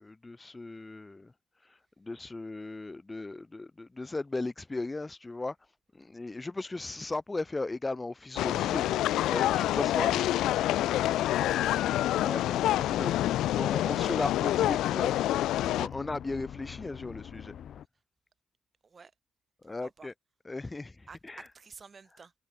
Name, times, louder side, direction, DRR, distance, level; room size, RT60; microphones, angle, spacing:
voice 1, 0.0-1.3 2.0-5.6 5.9-8.9 9.3-10.2 12.2-15.2 15.6-17.5 19.6-20.1 20.5-21.4, left 2 dB, 20° left, 0.3 m, -37 dB
sound 1, 8.4-15.9, left 14 dB, 85° left, 0.4 m, -27 dB
sound 2, 9.5-17.9, left 9 dB, 65° left, 3.4 m, -45 dB
voice 2, 10.6-11.8 18.8-19.1 19.6-20.1 21.1-22.3, right 5 dB, 35° right, 2.7 m, -53 dB
cardioid pair, 90°, 0 cm